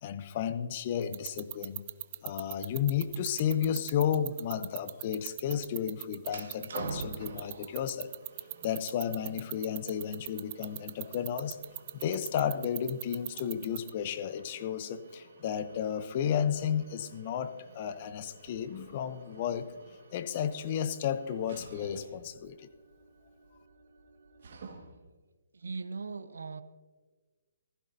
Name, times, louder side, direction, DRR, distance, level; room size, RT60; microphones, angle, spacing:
voice 1, 0.0-1.8 2.2-8.1 8.6-11.6 11.9-19.7 20.1-22.7, left 9 dB, 40° left, 12 dB, 0.7 m, -33 dB
sound 1, 1.0-13.9, right 17 dB, 35° right, 0.5 m, -36 dB
sound 2, 6.2-25.1, right 4 dB, 60° right, 1.7 m, -49 dB
voice 2, 25.5-26.6, right 4 dB, 75° right, 14 dB, 0.7 m, -39 dB
15.5 x 15.0 x 2.7 m, 1.3 s
figure-of-eight pair, 140°, 0 cm